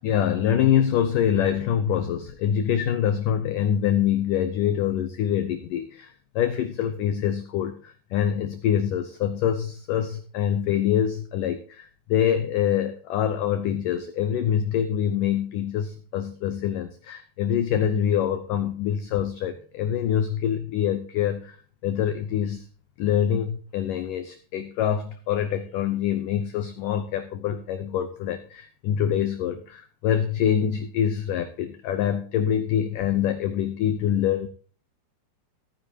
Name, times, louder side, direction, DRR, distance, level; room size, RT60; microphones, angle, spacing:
voice 1, 0.0-21.6 21.8-22.7 23.0-34.5, left 9 dB, 90° left, 9 dB, 1.8 m, -25 dB
16.5 x 9.7 x 2.9 m, 0.41 s
omnidirectional pair, 5.0 m